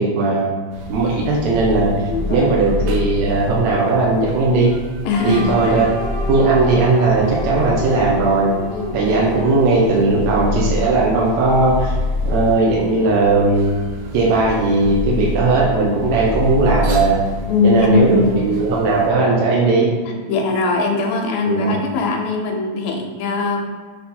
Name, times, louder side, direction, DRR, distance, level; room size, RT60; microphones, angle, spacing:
voice 1, 0.0-4.7 5.2-5.9 6.3-8.5 8.9-11.9 12.2-13.8 14.1-17.2 17.6-19.9 21.4-21.7, right 3 dB, 70° right, -3 dB, 1.7 m, -17 dB
sound 1, 0.7-19.1, left 1 dB, 90° right, 1.6 m, -28 dB
voice 2, 2.1-2.5 5.1-5.8 8.7-9.0 15.1-15.2 17.5-18.4 20.1-23.6, left 4 dB, 75° left, 2 dB, 2.3 m, -20 dB
sound 2, 5.1-10.0, right 1 dB, 25° left, 1.1 m, -30 dB
6.5 x 3.6 x 4.3 m, 1.5 s
omnidirectional pair, 4.1 m